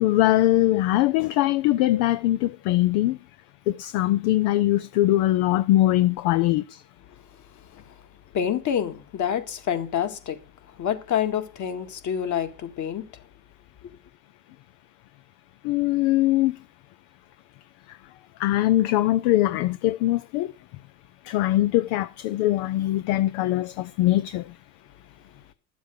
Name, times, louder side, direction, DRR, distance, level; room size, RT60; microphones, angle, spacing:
voice 1, 0.0-3.2 3.7-6.8 15.6-16.6 18.4-20.5 21.3-24.4, left 15 dB, 55° left, 0.7 m, -22 dB
voice 2, 7.3-8.0 8.3-10.4 10.7-13.2 13.8-13.9, left 9 dB, 40° left, 1.8 m, -28 dB
11.5 x 7.2 x 6.4 m
hypercardioid pair, 85°, 46 cm